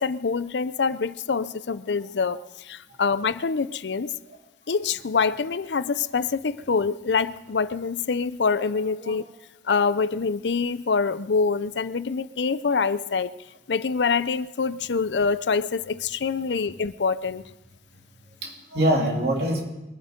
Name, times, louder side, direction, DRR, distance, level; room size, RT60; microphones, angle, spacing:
voice 1, 0.0-4.1 4.7-9.2 9.6-13.3 13.7-17.4, left 5 dB, 90° left, 15 dB, 0.6 m, -25 dB
voice 2, 18.4-19.6, right 1 dB, 65° right, 0 dB, 3.0 m, -24 dB
23.0 x 10.0 x 5.2 m, 0.96 s
head